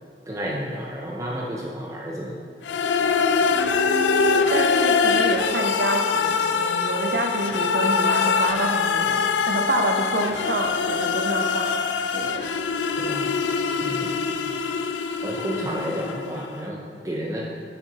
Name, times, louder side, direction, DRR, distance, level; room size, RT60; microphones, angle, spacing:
voice 1, 0.3-2.4 13.0-13.4 13.8-14.2 15.2-17.5, equal, 20° right, -2 dB, 0.4 m, -31 dB
sound 1, 2.6-16.5, left 5 dB, 80° left, 0.3 m, -23 dB
voice 2, 3.5-11.7 12.1-12.4, right 2 dB, 65° right, 4 dB, 0.6 m, -28 dB
7.4 x 6.7 x 2.9 m, 2.1 s
head